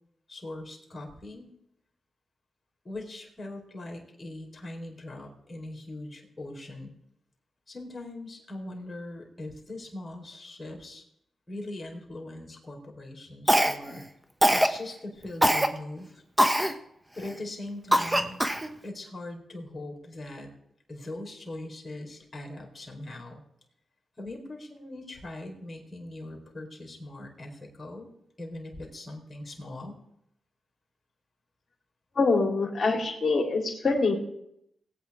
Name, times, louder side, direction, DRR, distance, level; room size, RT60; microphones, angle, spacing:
voice 1, 0.3-1.5 2.8-6.9 7.7-11.0 11.5-14.0 14.5-16.2 17.1-18.4 18.8-20.5 20.9-23.4 24.2-28.1 28.4-30.0, left 2 dB, 35° left, 0 dB, 4.3 m, -41 dB
Cough, 13.5-14.0 14.4-14.8 15.4-15.7 16.4-16.7 17.2-17.3 17.9-18.7, equal, 10° right, 1.3 m, -22 dB
voice 2, 32.2-34.1, left 3 dB, 50° left, 0 dB, 3.8 m, -25 dB
20.0 x 8.9 x 3.7 m, 0.77 s
cardioid pair, 50°, 0 cm